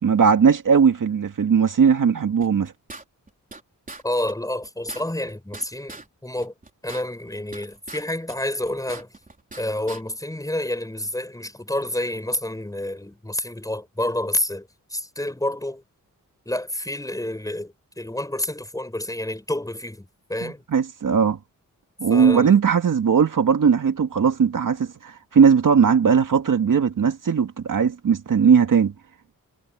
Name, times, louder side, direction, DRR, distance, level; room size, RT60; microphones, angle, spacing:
voice 1, 0.0-2.7 20.4-21.4 22.0-28.9, right 6 dB, 65° right, 2.1 m, -18 dB
sound 1, 2.4-3.6 3.9-4.0 4.3-4.4 4.6-6.1 6.4-8.0 8.3-9.6 9.9-10.0, right 3 dB, 25° right, 3.9 m, -41 dB
voice 2, 4.0-6.5 6.8-9.1 9.6-15.8 16.4-20.6 22.1-22.6, left 1 dB, 10° left, 6.6 m, -29 dB
wide cardioid pair, 160°, 33 cm